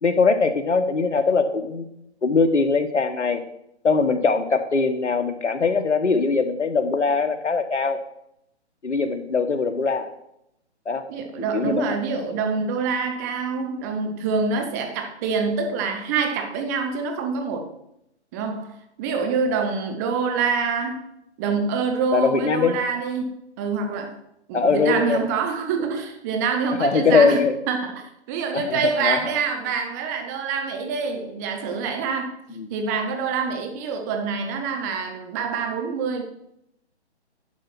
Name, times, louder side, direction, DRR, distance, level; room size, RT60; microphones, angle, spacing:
voice 1, 0.0-1.9 2.2-3.4 3.8-8.0 8.8-10.1 10.9-11.0 11.5-11.9 22.1-22.8 24.5-25.3 26.8-27.6 28.5-29.2 32.6-32.7, left 4 dB, 85° left, 8 dB, 1.3 m, -21 dB
voice 2, 11.1-17.7 18.3-21.0 21.4-24.2 24.5-32.3 32.7-36.2, right 5 dB, 15° right, 5 dB, 0.8 m, -26 dB
10.5 x 4.9 x 6.1 m, 0.78 s
hypercardioid pair, 150°, 34 cm